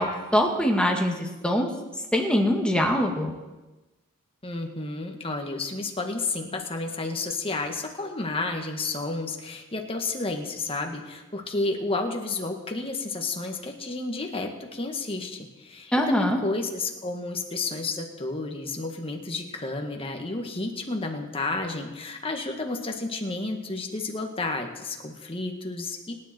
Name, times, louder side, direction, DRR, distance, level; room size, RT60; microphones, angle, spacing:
voice 1, 0.0-1.7 2.1-3.3 15.9-16.4, equal, 5° left, 1 dB, 2.0 m, -23 dB
voice 2, 4.4-26.1, left 3 dB, 25° left, 3 dB, 1.8 m, -31 dB
26.5 x 10.0 x 4.5 m, 1.1 s
head